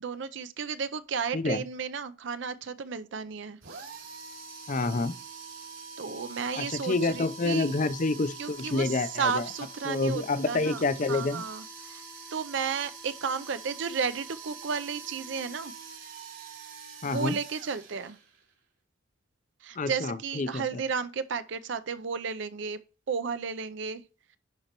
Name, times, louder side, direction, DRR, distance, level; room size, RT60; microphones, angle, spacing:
voice 1, 0.0-3.6 6.0-7.7 8.4-10.8 11.1-12.0 12.3-15.7 17.0-18.2 19.6-22.8 23.1-24.0, right 6 dB, 60° right, 0.5 m, -33 dB
voice 2, 1.3-1.6 4.7-5.1 6.5-9.5 9.9-11.4 17.0-17.4 19.8-20.8, left 3 dB, 40° left, 0.5 m, -28 dB
sound 1, 3.6-18.5, right 4 dB, 75° right, 2.9 m, -45 dB
10.5 x 4.3 x 2.9 m
head